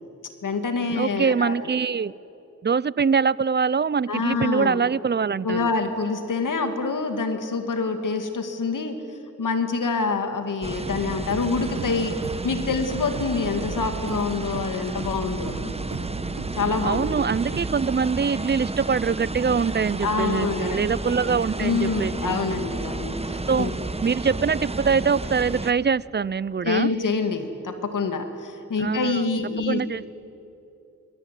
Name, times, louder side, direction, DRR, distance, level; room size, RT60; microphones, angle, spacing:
voice 1, 0.4-1.7 4.1-4.8 5.4-9.0 9.4-12.2 12.4-15.7 16.6-17.1 20.0-20.8 21.0-23.7 26.6-29.8, left 4 dB, 80° left, 7 dB, 2.3 m, -26 dB
voice 2, 1.0-2.1 2.6-5.7 16.8-22.4 23.5-23.7 24.0-26.9 28.8-29.1 29.7-30.1, right 6 dB, 35° right, 22 dB, 0.5 m, -23 dB
sound 1, 10.6-25.7, right 2 dB, 20° right, 1.2 m, -32 dB
sound 2, 11.3-17.8, right 7 dB, 85° right, 1.1 m, -37 dB
26.5 x 21.5 x 9.3 m, 2.8 s
wide cardioid pair, 75°, 31 cm